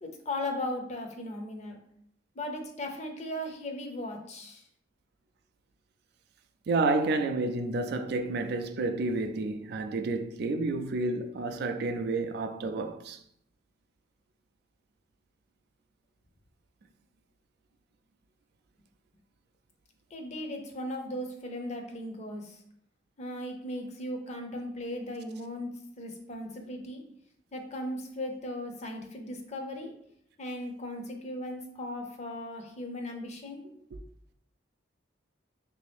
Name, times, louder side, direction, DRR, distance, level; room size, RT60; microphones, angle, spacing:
voice 1, 0.0-1.8 2.4-4.6 20.1-22.6 23.2-27.0 27.5-29.9 30.4-33.6, left 1 dB, 35° left, 0.6 m, -37 dB
voice 2, 6.7-13.2 33.9-34.0, right 3 dB, 60° right, 0.3 m, -30 dB
3.3 x 2.7 x 3.4 m
head